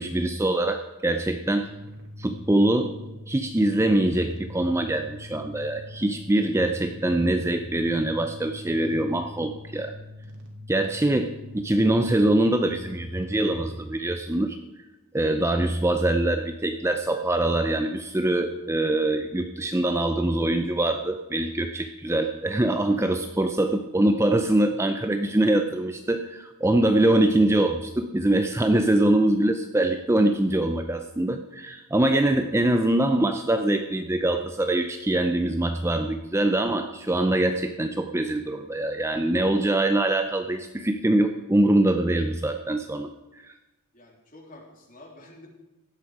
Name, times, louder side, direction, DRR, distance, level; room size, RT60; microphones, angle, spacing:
voice 1, 0.0-1.7 2.2-3.0 3.3-9.9 10.7-14.6 15.1-43.5, right 1 dB, 10° right, 6 dB, 0.5 m, -23 dB
sound 1, 1.6-13.7, left 1 dB, 55° right, 2.8 m, -43 dB
voice 2, 43.9-45.5, left 1 dB, 35° left, 0 dB, 3.2 m, -48 dB
16.5 x 12.0 x 4.8 m, 1.0 s
head